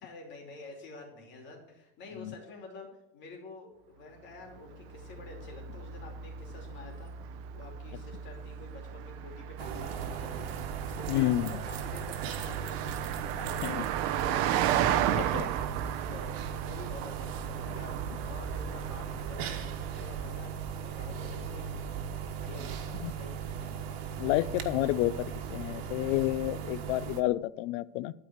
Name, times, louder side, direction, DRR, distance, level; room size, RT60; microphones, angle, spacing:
voice 1, 0.0-7.1 7.5-14.5 14.8-21.7 22.3-23.4, left 3 dB, 40° left, 1 dB, 2.9 m, -49 dB
Car passing by, 4.5-20.2, right 11 dB, 50° right, 0.8 m, -35 dB
sound 1, 9.6-27.2, right 7 dB, 90° right, 1.4 m, -37 dB
voice 2, 11.1-11.5 13.6-13.8 15.3-15.5 23.0-23.1 24.2-28.1, left 16 dB, 60° left, 19 dB, 0.5 m, -30 dB
12.5 x 4.9 x 7.9 m, 0.87 s
supercardioid pair, 160°, 30 cm